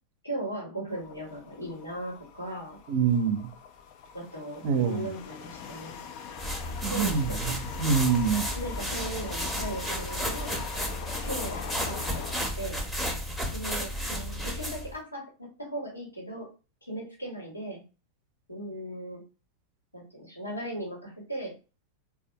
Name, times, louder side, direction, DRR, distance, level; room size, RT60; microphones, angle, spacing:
voice 1, 0.2-2.8 4.1-6.0 6.9-7.6 8.6-10.6 11.2-12.9 13.5-16.5 16.8-17.8 18.5-19.2 19.9-21.5, right 1 dB, 85° left, 1.1 m, -38 dB
sound 1, 0.9-12.4, left 7 dB, 45° left, 0.3 m, -42 dB
voice 2, 2.9-3.5 4.6-5.1 6.8-8.5, right 6 dB, 45° right, 0.5 m, -26 dB
sound 2, 6.4-14.9, equal, 5° left, 0.7 m, -33 dB
3.3 x 2.2 x 2.7 m
figure-of-eight pair, 90°, 0 cm